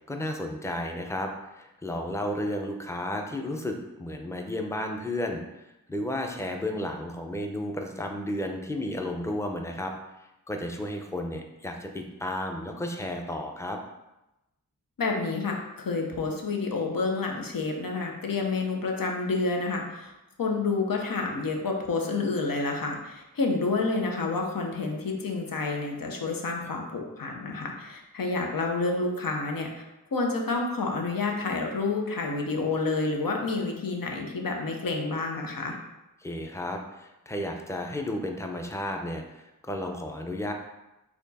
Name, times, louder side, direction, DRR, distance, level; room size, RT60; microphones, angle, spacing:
voice 1, 0.1-5.4 5.9-9.9 10.5-13.8 36.2-40.5, left 1 dB, 10° left, 3 dB, 0.5 m, -33 dB
voice 2, 15.0-20.1 20.4-29.8 30.1-35.7, left 3 dB, 75° left, 1 dB, 0.8 m, -29 dB
4.3 x 2.9 x 4.1 m, 0.95 s
wide cardioid pair, 60°, 34 cm